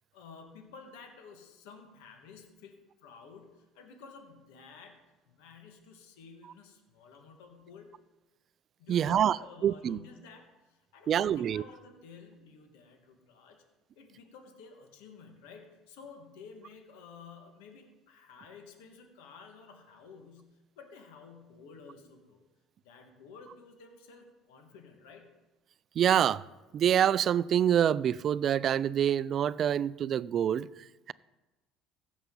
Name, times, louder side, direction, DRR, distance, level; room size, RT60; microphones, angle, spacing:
voice 1, 0.1-2.7 3.0-5.0 5.3-8.0 8.8-13.6 13.9-22.4 22.8-25.3, left 5 dB, 85° left, 1.6 m, -52 dB
voice 2, 8.9-9.4 9.6-10.0 11.1-11.6 26.0-26.4 26.7-30.7, right 9 dB, 50° right, 0.3 m, -26 dB
16.0 x 7.1 x 3.8 m
supercardioid pair, 85°, 0 cm